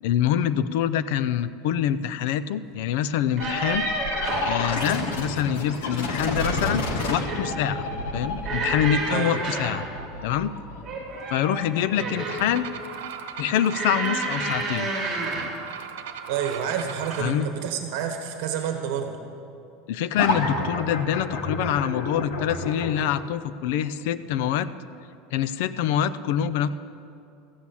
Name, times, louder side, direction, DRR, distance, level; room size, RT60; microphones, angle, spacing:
voice 1, 0.0-3.9 4.4-7.9 8.1-9.9 10.2-10.5 11.3-12.7 13.4-14.9 17.2-17.5 19.9-24.7 25.3-26.7, left 10 dB, 55° left, 15 dB, 0.4 m, -25 dB
sound 1, 3.2-4.6 6.0-6.6 7.0-7.5 8.4-9.8 10.8-12.5 13.7-15.6 16.4-16.7 17.1-17.3, right 3 dB, 15° right, 2.0 m, -30 dB
sound 2, 3.4-12.8 20.2-23.0, left 2 dB, 90° left, 1.7 m, -30 dB
sound 3, 12.2-17.3, right 7 dB, 90° right, 0.9 m, -38 dB
voice 2, 16.3-19.1, right 8 dB, 55° right, 5 dB, 1.2 m, -29 dB
14.5 x 8.3 x 7.2 m, 2.7 s
supercardioid pair, 180°, 0 cm